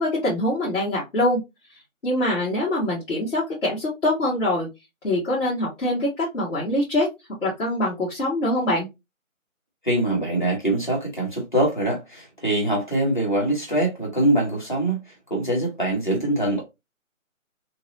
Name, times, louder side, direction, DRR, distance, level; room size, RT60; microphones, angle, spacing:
voice 1, 0.0-1.4 2.0-4.7 5.0-7.1 7.4-8.9, left 1 dB, 60° left, 1.8 m, -24 dB
voice 2, 9.8-16.6, right 1 dB, 35° left, 1.4 m, -23 dB
3.0 x 2.7 x 2.6 m
figure-of-eight pair, 175°, 41 cm